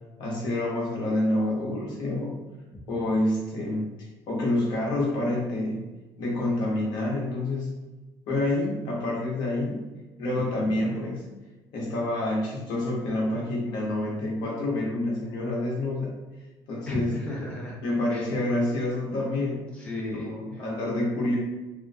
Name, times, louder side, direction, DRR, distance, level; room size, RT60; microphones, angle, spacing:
voice 1, 0.2-2.3 2.9-3.9 4.3-5.8 6.2-7.7 8.3-9.9 10.2-11.3 11.7-16.1 16.7-17.1 17.8-19.6 20.2-21.4, left 1 dB, 60° left, -4 dB, 0.9 m, -27 dB
voice 2, 10.3-10.7 16.9-17.8 18.1-18.3 19.7-20.6, left 1 dB, 15° left, -4 dB, 0.5 m, -35 dB
2.5 x 2.2 x 2.2 m, 1.1 s
cardioid pair, 145°, 8 cm